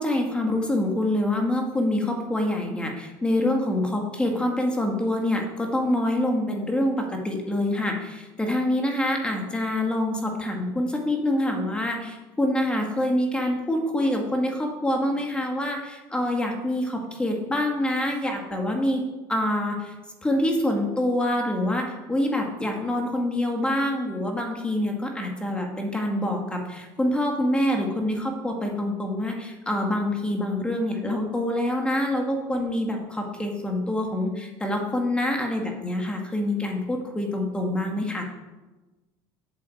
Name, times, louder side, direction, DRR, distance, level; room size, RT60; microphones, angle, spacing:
voice 1, 0.0-19.0 19.3-19.9 20.2-38.2, left 1 dB, 10° left, 2 dB, 2.0 m, -26 dB
8.7 x 8.3 x 7.8 m, 1.1 s
cardioid pair, 135°, 10 cm